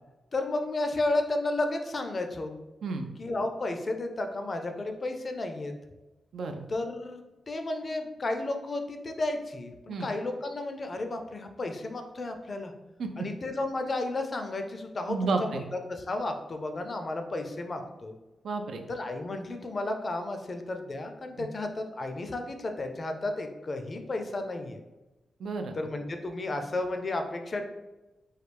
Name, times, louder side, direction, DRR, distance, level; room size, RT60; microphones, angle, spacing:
voice 1, 0.3-2.5 3.2-5.7 6.7-12.7 13.2-18.1 18.9-24.8 25.7-27.7, left 2 dB, 40° left, 5 dB, 0.4 m, -33 dB
voice 2, 6.3-6.7 9.9-10.1 13.0-13.1 15.1-15.6 18.4-18.9 21.4-21.5 25.4-25.8, right 4 dB, 80° right, 5 dB, 0.4 m, -31 dB
3.2 x 2.3 x 3.3 m, 1.1 s
cardioid pair, 100°, 0 cm